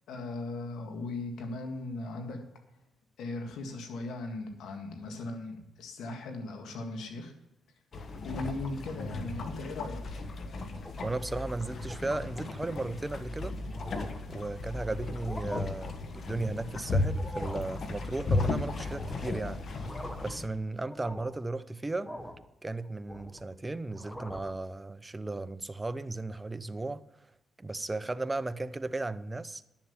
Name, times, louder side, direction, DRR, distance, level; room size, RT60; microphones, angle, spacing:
voice 1, 0.1-2.4 3.2-7.3 8.2-10.2, left 2 dB, 80° left, 1.9 m, -38 dB
sound 1, 7.9-20.5, left 3 dB, 55° left, 1.4 m, -35 dB
sound 2, 10.7-11.3 11.7-12.0 12.4-12.6 13.2-13.3 13.6-14.3 15.1-15.6 17.0-17.7 18.8-19.3 19.7-20.4 20.8-21.4 22.0-22.5 22.8-23.5 23.9-24.6, equal, 15° left, 1.1 m, -43 dB
voice 2, 11.0-13.5 14.3-22.1 22.6-27.0 27.6-29.7, right 2 dB, 20° right, 0.6 m, -35 dB
10.5 x 7.3 x 7.2 m
cardioid pair, 75°, 0 cm